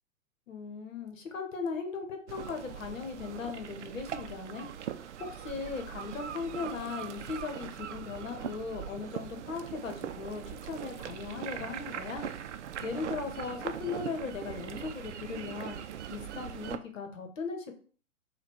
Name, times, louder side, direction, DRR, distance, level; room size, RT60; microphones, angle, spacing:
voice 1, 0.5-4.7 5.2-12.3 12.8-15.8 16.1-17.7, left 5 dB, 65° left, 5 dB, 1.1 m, -38 dB
sound 1, 2.3-16.8, right 9 dB, 60° right, 0.5 m, -41 dB
4.2 x 2.3 x 4.4 m, 0.42 s
figure-of-eight pair, 115°, 41 cm